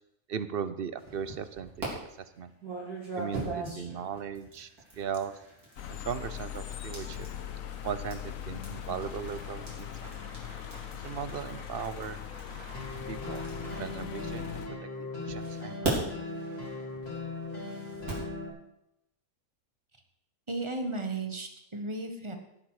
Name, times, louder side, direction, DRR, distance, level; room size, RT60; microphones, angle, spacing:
voice 1, 0.3-1.7 2.4-2.5 3.2-4.7 5.0-5.3 5.9-7.2 7.8-10.1 11.0-12.2 13.1-14.6 15.0-16.2, right 7 dB, 50° right, 13 dB, 0.8 m, -37 dB
sound 1, 1.0-1.9 2.6-14.6 15.3-18.3, right 3 dB, 85° right, 4.3 m, -40 dB
sound 2, 5.8-14.7, left 10 dB, 65° left, 1.2 m, -40 dB
sound 3, 12.7-18.5, left 3 dB, 45° left, 3.6 m, -38 dB
voice 2, 20.5-22.4, right 2 dB, 20° right, 5 dB, 1.4 m, -34 dB
17.5 x 7.9 x 4.9 m, 0.83 s
omnidirectional pair, 1.6 m